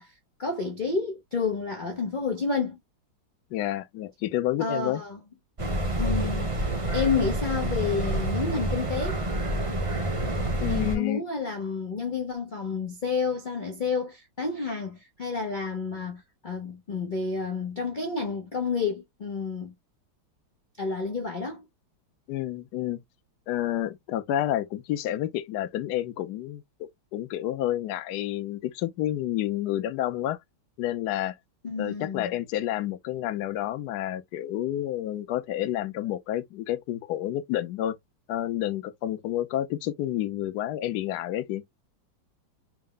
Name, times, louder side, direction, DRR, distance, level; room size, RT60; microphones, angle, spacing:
voice 1, 0.0-2.8 4.6-5.2 6.0-6.5 6.9-9.2 10.7-19.7 20.8-21.7 31.6-32.3, left 4 dB, 90° left, 0.4 m, -30 dB
voice 2, 3.5-5.0 10.6-11.2 22.3-23.0 23.5-30.4 30.8-31.4 31.8-38.0 38.3-41.6, left 13 dB, 70° left, 1.1 m, -29 dB
sound 1, 5.6-11.0, right 1 dB, 25° right, 0.7 m, -28 dB
4.6 x 2.0 x 3.6 m
omnidirectional pair, 2.1 m